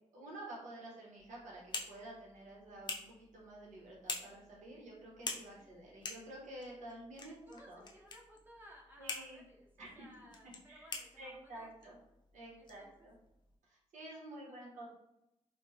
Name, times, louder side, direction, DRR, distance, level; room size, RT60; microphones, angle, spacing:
voice 1, 0.1-7.4 7.7-7.8 9.0-9.4 9.8-10.0 10.7-10.9 11.2-12.0 12.3-13.1 13.7-14.9, right 1 dB, 90° right, -4 dB, 1.0 m, -50 dB
sound 1, 1.2-13.6, left 4 dB, 35° left, 0.5 m, -48 dB
voice 2, 7.3-11.7 12.5-13.1 14.3-14.9, equal, 15° right, -2 dB, 0.6 m, -60 dB
4.3 x 2.0 x 2.7 m, 0.87 s
wide cardioid pair, 145°, 12 cm